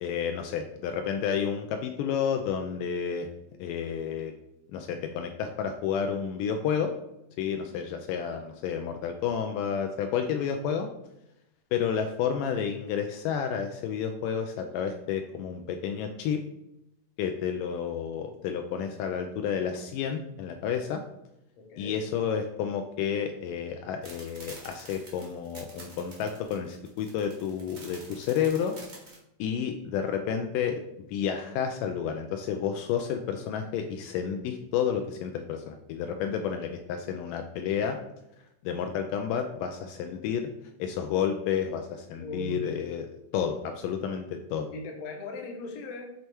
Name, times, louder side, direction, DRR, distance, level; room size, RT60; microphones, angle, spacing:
voice 1, 0.0-3.3 3.6-4.3 4.7-6.9 7.4-10.9 11.7-16.4 17.2-21.0 21.8-28.7 29.4-30.8 31.1-38.0 38.6-40.4 40.8-43.1 43.3-44.7, left 7 dB, 80° left, 4 dB, 2.0 m, -30 dB
voice 2, 21.6-21.9 23.8-23.9 42.2-42.6 44.7-46.1, left 2 dB, 65° left, 1 dB, 1.6 m, -38 dB
sound 1, 24.0-29.2, right 3 dB, 70° right, 0.6 m, -47 dB
6.8 x 3.2 x 4.4 m, 0.85 s
omnidirectional pair, 4.0 m